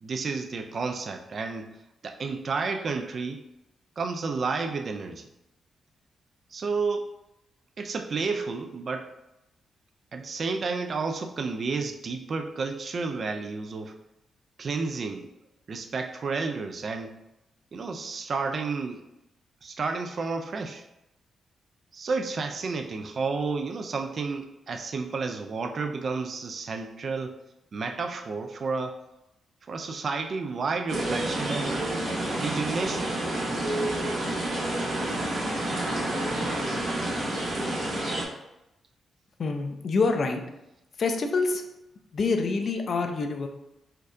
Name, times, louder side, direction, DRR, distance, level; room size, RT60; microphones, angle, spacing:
voice 1, 0.0-1.7 2.0-3.4 4.0-5.3 6.5-7.1 7.8-9.1 10.1-14.0 14.6-15.2 15.7-17.2 17.7-19.0 19.6-20.8 21.9-27.3 27.7-29.0 29.7-31.9 32.3-33.1, right 4 dB, 55° right, 6 dB, 0.3 m, -31 dB
sound 1, 30.9-38.3, right 1 dB, 70° right, 1.0 m, -29 dB
voice 2, 39.4-40.4 41.0-41.6 42.1-43.5, left 4 dB, 60° left, 5 dB, 0.5 m, -26 dB
4.4 x 2.4 x 2.5 m, 0.90 s
cardioid pair, 70°, 0 cm